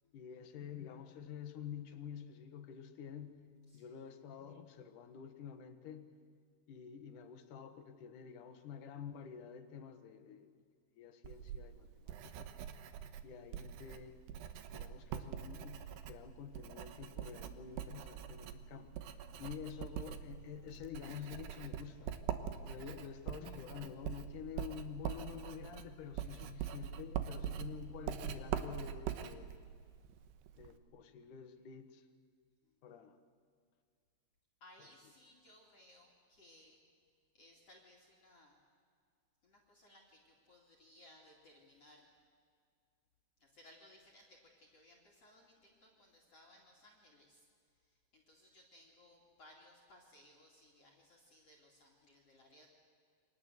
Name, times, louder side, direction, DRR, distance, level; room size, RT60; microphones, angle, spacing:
voice 1, 0.1-3.5 3.7-6.1 6.7-10.6 11.0-12.5 13.2-14.2 14.7-18.9 19.4-22.2 22.7-29.5 30.6-32.1 32.8-33.2 34.8-34.9, left 8 dB, 60° left, 8 dB, 2.6 m, -49 dB
Writing, 11.2-30.8, right 9 dB, 90° right, 3.3 m, -44 dB
voice 2, 34.6-36.8 37.3-38.6 39.4-42.1 43.4-47.5 47.8-52.7, left 1 dB, 40° left, 0 dB, 3.4 m, -63 dB
29.0 x 24.5 x 8.1 m, 2.1 s
omnidirectional pair, 4.8 m